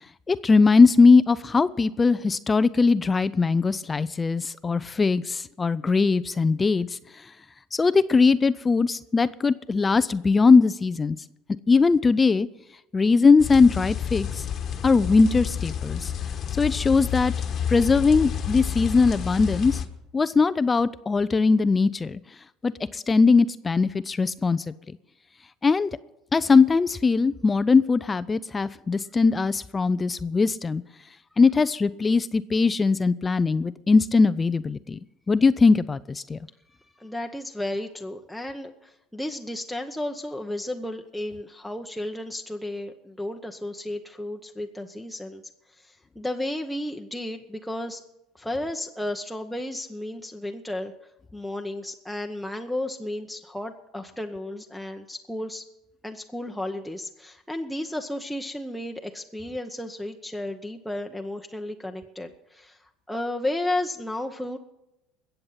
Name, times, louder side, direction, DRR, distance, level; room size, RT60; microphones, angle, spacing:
voice 1, 0.3-7.0 7.7-11.2 11.7-12.5 12.9-14.4 14.8-16.1 16.5-17.3 17.7-19.8 20.1-22.2 22.6-24.7 25.6-25.9 26.3-30.8 31.4-35.0 35.3-36.4, left 4 dB, 25° left, 16 dB, 0.4 m, -20 dB
sound 1, 13.4-19.9, left 8 dB, 45° left, 1.2 m, -30 dB
voice 2, 36.8-45.4 45.7-48.0 48.3-50.9 51.3-55.7 56.0-64.6, left 1 dB, ahead, 2 dB, 0.9 m, -33 dB
21.0 x 7.9 x 5.7 m, 0.89 s
supercardioid pair, 90°, 0 cm